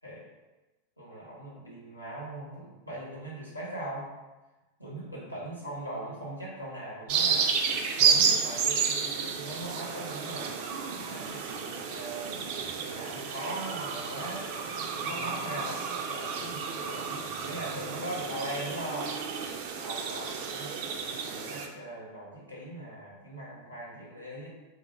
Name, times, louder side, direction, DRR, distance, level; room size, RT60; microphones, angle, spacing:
voice 1, 1.0-4.1 4.8-7.5 8.0-10.5 11.1-14.4 14.9-19.2 19.8-20.8 21.2-24.5, right 1 dB, 85° left, -6 dB, 1.0 m, -40 dB
sound 1, 7.1-21.7, right 6 dB, 45° right, 0.3 m, -31 dB
3.4 x 2.0 x 3.5 m, 1.1 s
figure-of-eight pair, 90°, 0 cm